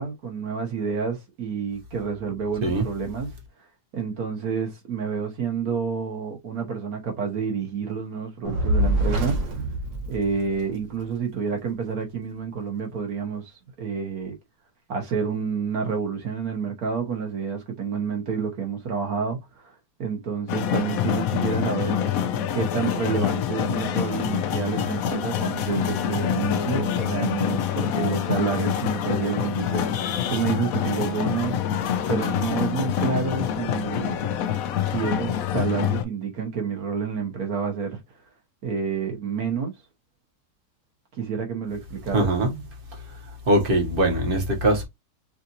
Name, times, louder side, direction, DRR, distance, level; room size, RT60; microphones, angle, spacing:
voice 1, 0.0-3.3 3.9-9.4 10.1-14.3 14.9-19.7 20.0-22.0 22.5-34.2 34.9-38.0 38.6-39.7 41.1-42.3, right 6 dB, 60° right, 1.8 m, -29 dB
Fire, 8.4-10.9, right 1 dB, 90° right, 2.0 m, -25 dB
sound 1, 20.5-36.0, left 9 dB, 70° left, 0.9 m, -26 dB
voice 2, 42.1-42.7 43.1-44.8, right 1 dB, 35° right, 1.2 m, -22 dB
5.7 x 2.6 x 2.8 m
omnidirectional pair, 1.8 m